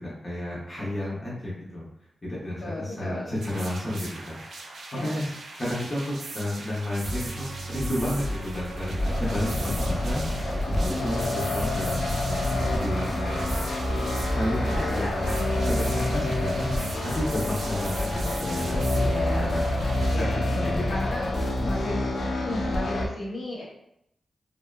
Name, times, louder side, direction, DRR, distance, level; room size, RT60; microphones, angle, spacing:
voice 1, 0.0-1.9 2.2-5.3 5.6-7.5 7.7-8.9 9.2-13.3 14.4-19.7 20.1-20.8, left 1 dB, 20° left, -7 dB, 0.6 m, -32 dB
voice 2, 2.6-3.4 4.9-5.1 14.6-15.1 18.7-19.5 20.0-20.4 20.9-21.3 21.6-22.1 22.4-23.6, left 1 dB, 55° left, -5 dB, 0.8 m, -34 dB
sound 1, 3.4-20.2, right 2 dB, 75° right, 0.4 m, -40 dB
sound 2, 7.0-21.8, equal, 15° right, 0.8 m, -34 dB
sound 3, 9.0-23.1, left 1 dB, 75° left, 0.3 m, -28 dB
2.5 x 2.2 x 2.2 m, 0.77 s
wide cardioid pair, 140°, 0 cm